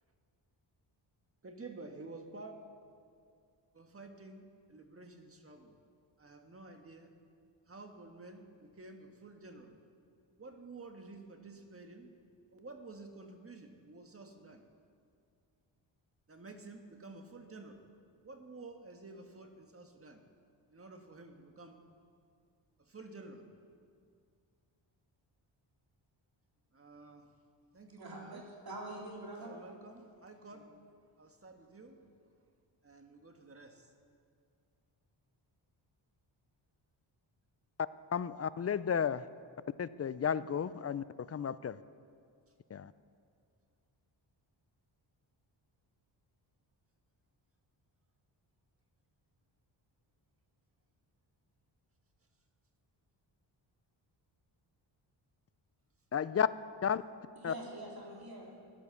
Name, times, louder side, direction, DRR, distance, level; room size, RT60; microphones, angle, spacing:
voice 1, 1.4-2.6 3.7-5.8 6.2-7.1 7.7-9.8 10.4-12.1 12.5-14.7 16.3-17.9 18.2-20.2 20.7-21.8 22.8-23.5 26.7-27.3 27.7-28.4 29.4-30.7 31.2-32.1 32.8-33.9, right 3 dB, 30° right, 5 dB, 1.5 m, -51 dB
voice 2, 28.0-29.5 30.5-30.6 57.4-58.5, right 1 dB, 50° right, -2 dB, 3.7 m, -45 dB
voice 3, 38.1-39.2 39.8-41.8 42.7-42.9 56.1-56.5 56.8-57.0 57.4-57.5, left 7 dB, 35° left, 16 dB, 0.4 m, -33 dB
16.0 x 10.5 x 7.1 m, 2.3 s
cardioid pair, 100°, 47 cm